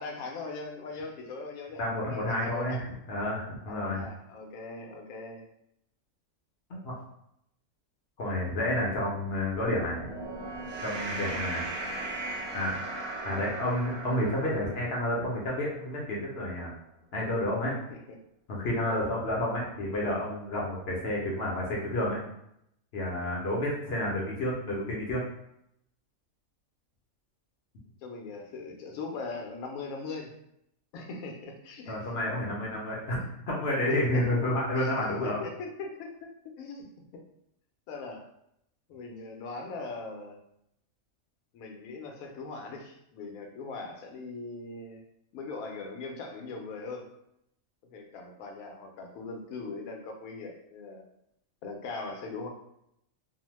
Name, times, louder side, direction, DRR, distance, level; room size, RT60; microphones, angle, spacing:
voice 1, 0.0-1.8 2.0-2.8 3.7-5.4 11.0-11.4 17.9-18.0 18.9-19.2 28.0-30.3 30.9-32.0 33.9-34.4 34.7-34.9 35.2-36.1 36.6-36.8 37.1-37.2 37.9-38.3 38.9-40.4 41.5-45.0 45.3-47.1 47.9-51.0 51.6-52.5, left 3 dB, 80° left, 2 dB, 1.0 m, -40 dB
voice 2, 1.8-2.8 3.1-4.0 6.8-7.0 8.2-10.1 10.8-11.6 12.5-12.8 13.2-16.7 17.1-17.8 18.5-22.2 22.9-25.2 31.9-35.4, left 1 dB, 60° left, -3 dB, 0.7 m, -30 dB
sound 1, 9.5-16.0, right 2 dB, 90° right, 1.1 m, -38 dB
2.7 x 2.0 x 3.0 m, 0.76 s
omnidirectional pair, 1.5 m